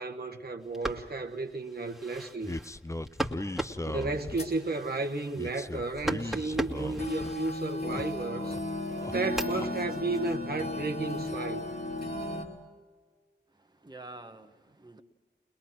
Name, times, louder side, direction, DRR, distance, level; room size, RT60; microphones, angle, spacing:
voice 1, 0.0-2.6 3.8-8.6 9.1-11.6, right 3 dB, 55° right, 3 dB, 1.3 m, -33 dB
sound 1, 0.6-8.3 8.7-11.4, right 1 dB, ahead, 2.1 m, -39 dB
sound 2, 2.4-4.6 5.4-7.3 7.7-8.6 8.9-9.7, left 2 dB, 15° left, 0.6 m, -38 dB
sound 3, 4.2-4.6 5.0-5.1 6.2-6.3 7.0-12.4, left 2 dB, 55° left, 3.4 m, -35 dB
voice 2, 13.5-15.0, right 2 dB, 20° right, 5 dB, 1.5 m, -48 dB
21.5 x 21.5 x 6.1 m, 1.5 s
cardioid pair, 45°, 19 cm